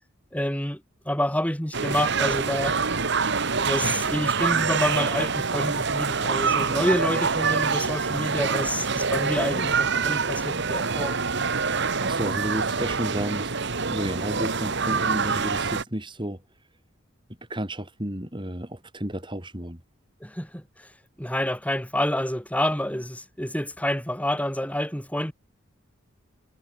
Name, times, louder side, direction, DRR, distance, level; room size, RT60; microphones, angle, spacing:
voice 1, 0.3-2.8 3.6-11.2 20.2-20.9 21.2-25.3, left 1 dB, 5° left, 5.3 m, -28 dB
sound 1, 1.7-15.8, right 5 dB, 55° right, 1.7 m, -25 dB
voice 2, 11.6-13.6 13.9-16.4 17.5-19.8, right 1 dB, 20° right, 3.9 m, -32 dB
head